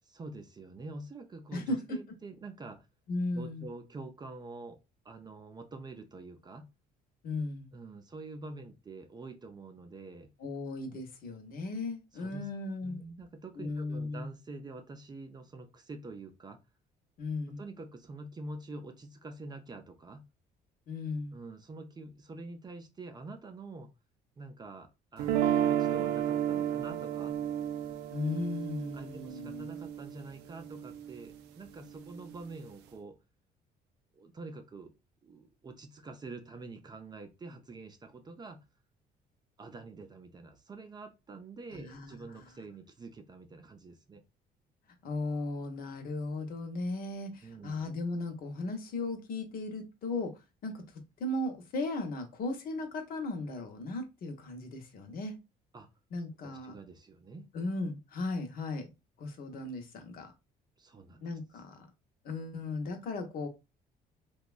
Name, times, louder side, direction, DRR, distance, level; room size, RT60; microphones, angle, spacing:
voice 1, 0.0-2.9 3.3-4.8 5.0-6.7 7.7-10.3 10.9-11.0 12.1-12.4 12.8-16.6 17.6-20.3 21.3-23.9 24.4-27.4 28.9-33.2 34.1-34.9 35.2-38.6 39.6-44.2 47.4-47.8 55.7-55.9 56.4-57.5 60.8-61.2, right 3 dB, 25° right, 0.4 m, -46 dB
voice 2, 1.5-2.0 3.1-3.6 7.2-7.7 10.4-13.0 13.6-14.3 17.2-17.6 20.9-21.4 28.1-29.7 41.7-42.4 45.0-50.3 50.6-50.7 51.2-55.3 56.1-56.7 57.5-58.9 59.2-60.3 61.2-61.9 62.2-63.5, left 2 dB, 60° left, 0.8 m, -36 dB
sound 1, 25.2-31.3, right 10 dB, 90° right, 0.4 m, -32 dB
2.9 x 2.2 x 2.3 m
cardioid pair, 110°, 17 cm